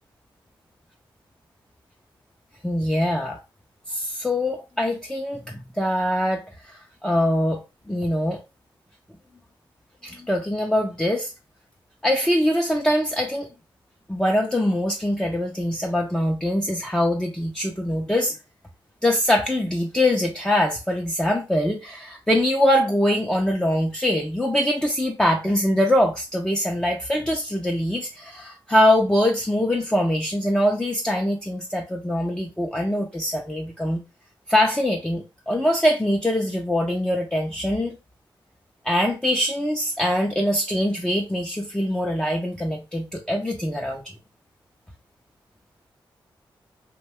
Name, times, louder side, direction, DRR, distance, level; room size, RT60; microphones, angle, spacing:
voice 1, 2.6-3.4 3.9-6.4 6.7-7.6 7.9-8.4 10.0-11.3 12.0-13.5 14.1-18.4 19.0-34.0 34.5-38.0 38.8-44.0, left 1 dB, 10° left, 0.5 m, -23 dB
2.6 x 2.2 x 3.0 m
cardioid pair, 50°, 9 cm